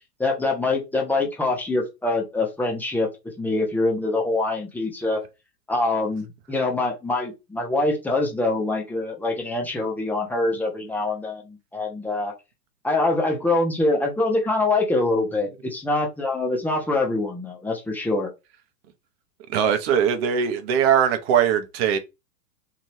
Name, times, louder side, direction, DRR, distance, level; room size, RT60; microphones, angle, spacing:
voice 1, 0.2-5.2 5.7-12.3 12.8-18.3, left 2 dB, 5° left, 0.7 m, -24 dB
voice 2, 19.5-22.0, right 8 dB, 40° right, 0.8 m, -21 dB
2.8 x 2.5 x 3.2 m
figure-of-eight pair, 105°, 50 cm